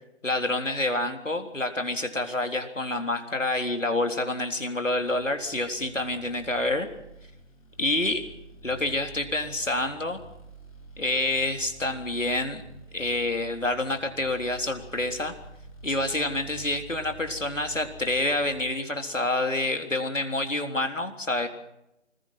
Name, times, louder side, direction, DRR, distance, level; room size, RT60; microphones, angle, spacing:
voice 1, 0.2-6.9 7.8-8.3 8.6-10.2 11.0-12.6 12.9-15.3 15.8-21.5, left 2 dB, 85° left, 5 dB, 3.8 m, -28 dB
sound 1, 5.0-18.7, right 2 dB, 30° left, 6.9 m, -48 dB
26.0 x 21.0 x 6.0 m, 0.86 s
figure-of-eight pair, 160°, 37 cm